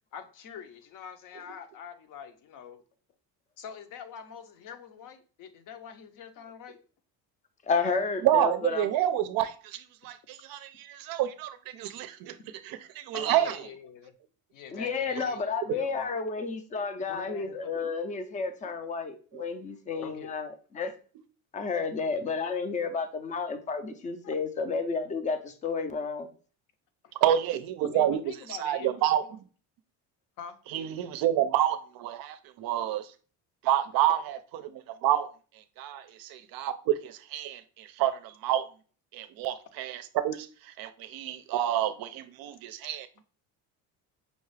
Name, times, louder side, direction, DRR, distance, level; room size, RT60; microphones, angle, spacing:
voice 1, 0.1-2.8 3.6-6.8 13.1-14.1 14.5-16.2 17.1-17.9 20.0-20.3 24.2-24.3 27.8-29.0 29.3-29.4 30.4-30.6, left 7 dB, 50° left, 0.7 m, -45 dB
voice 2, 7.7-8.9 14.7-20.5 20.7-20.9 21.5-26.3, left 4 dB, 20° left, 0.4 m, -31 dB
voice 3, 8.2-12.4 12.6-13.6 15.2-15.3 19.3-19.4 27.2-28.2 28.5-29.2 30.7-33.1 33.6-35.3 35.8-38.7 39.1-40.5 40.8-43.2, right 11 dB, 60° right, 0.5 m, -28 dB
5.3 x 2.3 x 3.2 m
cardioid pair, 145°, 40 cm